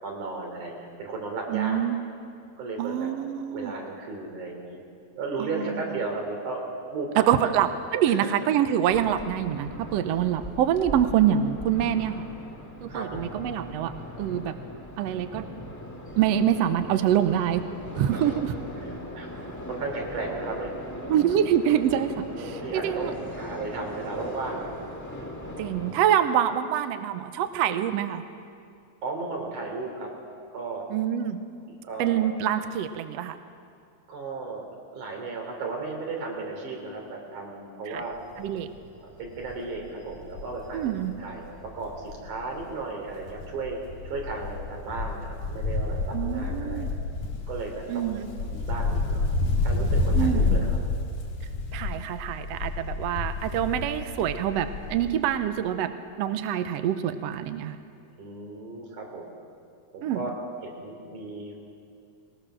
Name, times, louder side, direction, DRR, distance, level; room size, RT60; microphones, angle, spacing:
voice 1, 0.0-1.8 2.6-3.1 3.5-4.8 5.2-7.5 8.0-8.3 12.9-13.3 18.1-18.3 18.8-19.3 19.7-20.7 22.3-24.8 29.0-30.1 30.5-30.9 31.8-32.3 34.1-34.7 34.9-38.1 39.0-40.8 41.2-41.4 41.7-43.8 44.0-46.9 47.5-48.2 48.5-49.3 49.6-50.8 58.2-59.3 59.9-60.3 60.6-61.6, right 3 dB, 85° right, 1 dB, 4.7 m, -35 dB
voice 2, 1.5-2.0 2.8-3.7 5.4-5.9 7.2-12.2 12.8-13.9 14.2-14.5 15.0-15.4 16.2-17.6 17.9-18.5 21.1-22.1 22.4-23.1 25.6-28.2 30.9-31.4 32.0-33.4 37.9-38.0 38.4-38.7 40.7-41.2 46.1-46.9 47.9-48.3 50.1-50.6 51.7-55.9 56.2-57.8 60.0-60.2, right 10 dB, 70° right, 9 dB, 1.7 m, -25 dB
sound 1, 8.8-26.0, left 1 dB, 10° left, 1.4 m, -39 dB
Wind, 38.2-38.5 38.9-39.0 39.2-42.8 43.1-55.2 55.5-55.6, left 3 dB, 70° left, 3.3 m, -29 dB
21.0 x 20.0 x 6.3 m, 2.4 s
omnidirectional pair, 3.4 m